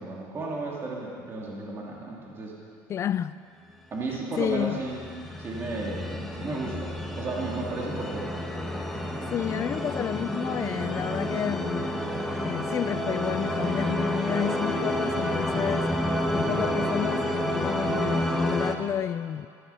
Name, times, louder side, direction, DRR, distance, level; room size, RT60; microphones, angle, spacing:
voice 1, 0.0-2.6 3.9-5.0 5.4-8.3, right 3 dB, 30° right, 2.5 m, -34 dB
voice 2, 2.9-3.4 4.4-4.8 9.3-11.9 12.3-19.5, left 9 dB, 35° left, 0.3 m, -30 dB
sound 1, 4.4-18.7, equal, ahead, 1.2 m, -30 dB
15.5 x 14.5 x 5.7 m
cardioid pair, 140°, 8 cm